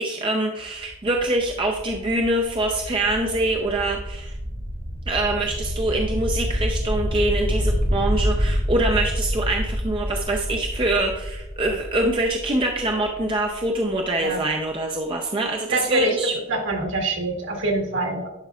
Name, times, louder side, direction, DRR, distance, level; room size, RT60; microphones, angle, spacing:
voice 1, 0.0-4.4 5.1-16.3, right 1 dB, 25° right, 1 dB, 0.5 m, -24 dB
sound 1, 0.6-14.3, equal, 45° right, 1.3 m, -28 dB
voice 2, 15.7-16.2 16.5-18.3, right 2 dB, 60° right, 1 dB, 1.5 m, -24 dB
11.0 x 4.6 x 2.3 m, 0.93 s
head